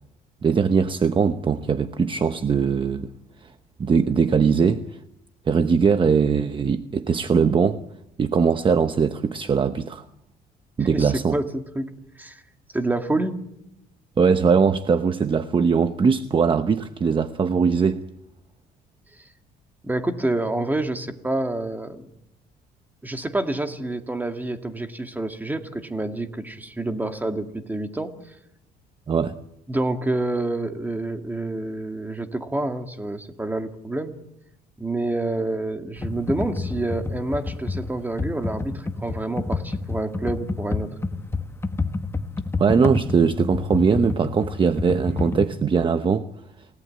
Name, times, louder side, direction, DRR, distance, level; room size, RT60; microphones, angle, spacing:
voice 1, 0.4-3.1 3.8-4.9 5.5-7.8 8.2-10.0 10.8-11.3 14.2-18.0 29.1-29.3 42.6-46.3, right 5 dB, 30° right, 0.9 m, -20 dB
voice 2, 10.8-11.9 12.2-12.4 12.7-13.4 19.8-22.1 23.0-28.1 29.7-34.2 34.8-40.9, right 2 dB, 10° right, 2.2 m, -28 dB
Computer keyboard, 36.0-45.5, left 3 dB, 15° left, 1.4 m, -28 dB
28.5 x 18.0 x 8.8 m
cardioid pair, 110°, 17 cm